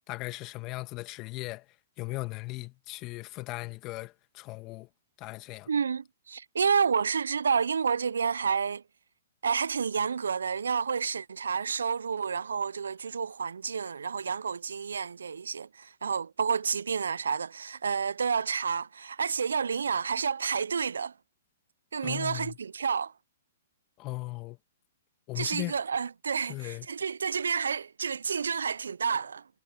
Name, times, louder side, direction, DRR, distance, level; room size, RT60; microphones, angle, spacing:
voice 1, 0.1-1.7 2.0-4.9 5.2-5.7 22.0-22.6 24.0-24.6 25.3-25.7 26.5-26.9, left 21 dB, 35° left, 1.8 m, -37 dB
voice 2, 5.7-8.8 9.4-21.1 21.9-23.1 25.4-29.5, right 6 dB, 80° right, 0.4 m, -30 dB
hypercardioid pair, 120°, 0 cm